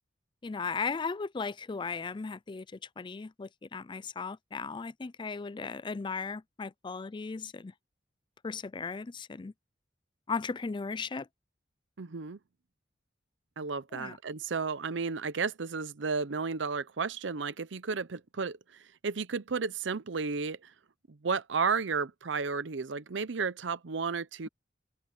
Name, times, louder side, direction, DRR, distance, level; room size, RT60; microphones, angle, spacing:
voice 1, 0.4-2.7 3.0-7.7 8.4-9.5 10.3-11.3 13.9-14.2, left 4 dB, 25° left, 0.4 m, -36 dB
voice 2, 12.0-12.4 13.6-20.7 21.1-24.5, right 5 dB, 90° right, 0.7 m, -33 dB
open air
head